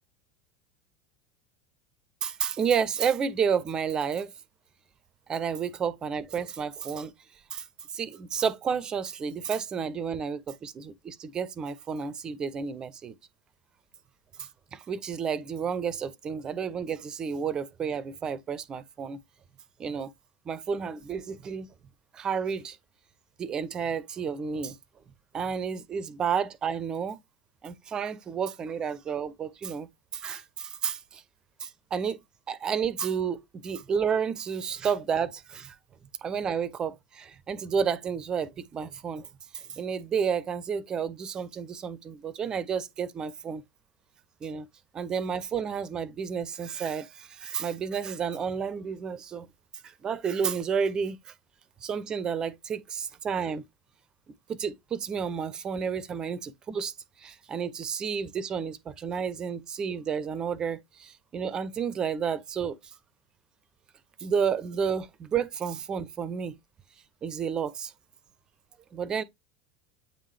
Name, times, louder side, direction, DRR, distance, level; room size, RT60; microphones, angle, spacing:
voice 1, 2.2-4.3 5.3-7.1 7.5-7.6 7.9-13.1 14.4-19.2 19.8-20.1 20.5-21.7 22.1-22.8 23.4-24.8 25.3-27.2 27.6-31.2 31.6-32.2 32.5-35.7 36.2-39.3 39.5-43.6 44.4-44.7 44.9-49.5 49.8-51.2 51.8-53.6 54.5-56.9 57.2-62.8 64.2-66.5 67.2-67.9 68.9-69.2, right 6 dB, 30° right, 0.7 m, -31 dB
8.7 x 3.7 x 3.2 m
figure-of-eight pair, 75°, 3 cm